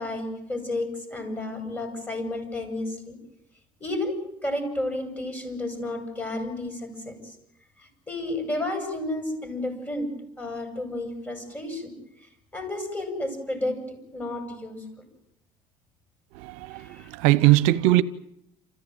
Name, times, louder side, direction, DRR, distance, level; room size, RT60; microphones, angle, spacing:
voice 1, 0.0-3.2 3.8-7.2 7.8-10.1 10.4-11.9 12.5-14.9 16.8-17.1, left 1 dB, 15° left, 6.7 m, -32 dB
voice 2, 16.4-18.0, right 17 dB, 85° right, 0.8 m, -20 dB
28.5 x 14.5 x 9.2 m
cardioid pair, 120°, 12 cm